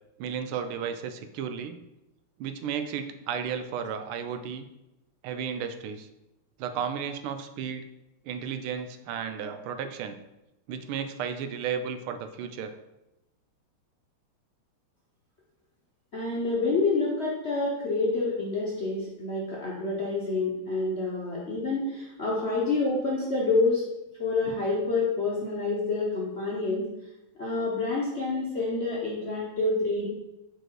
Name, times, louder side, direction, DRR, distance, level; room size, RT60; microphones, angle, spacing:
voice 1, 0.2-1.8 2.4-4.7 5.2-6.1 6.6-7.8 8.2-10.2 10.7-12.7, right 7 dB, 85° right, 8 dB, 1.4 m, -33 dB
voice 2, 16.1-23.8 24.2-26.8 27.4-30.1, left 3 dB, 50° left, -5 dB, 0.7 m, -28 dB
4.8 x 4.4 x 4.5 m, 0.93 s
omnidirectional pair, 2.3 m